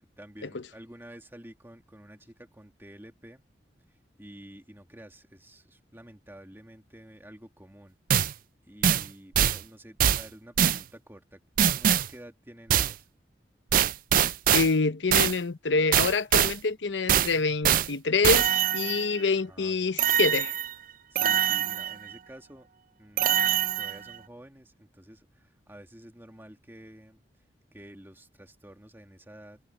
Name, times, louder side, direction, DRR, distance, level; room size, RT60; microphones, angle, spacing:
voice 1, 0.0-3.4 3.9-8.0 8.2-13.1 19.5-19.7 21.1-22.7 23.0-29.6, right 1 dB, 15° right, 2.1 m, -50 dB
sound 1, 8.1-8.3 8.8-9.1 9.4-9.6 10.0-10.2 10.6-10.8 11.6-12.1 12.7-12.9 13.7-14.7 15.1-15.4 15.9-16.6 17.1-17.3 17.6-17.9 18.2-19.2 20.0-20.7 21.2-22.1 23.2-24.1, right 10 dB, 50° right, 0.4 m, -23 dB
voice 2, 14.5-20.6, left 4 dB, 80° left, 0.8 m, -26 dB
head